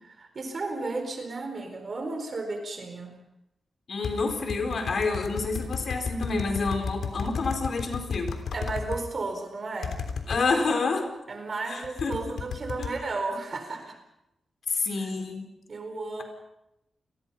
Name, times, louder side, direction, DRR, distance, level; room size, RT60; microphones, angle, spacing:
voice 1, 0.0-3.1 8.5-10.0 11.3-13.9 15.7-16.2, right 3 dB, 40° right, 5 dB, 4.3 m, -33 dB
voice 2, 3.9-8.3 10.3-11.1 11.7-12.3 12.8-12.9 14.7-15.5, left 3 dB, 50° left, 5 dB, 4.3 m, -28 dB
sound 1, 4.0-9.0 9.8-10.4 11.8-13.0, left 5 dB, 80° left, 3.4 m, -33 dB
30.0 x 22.0 x 5.6 m, 0.87 s
wide cardioid pair, 175°, 0 cm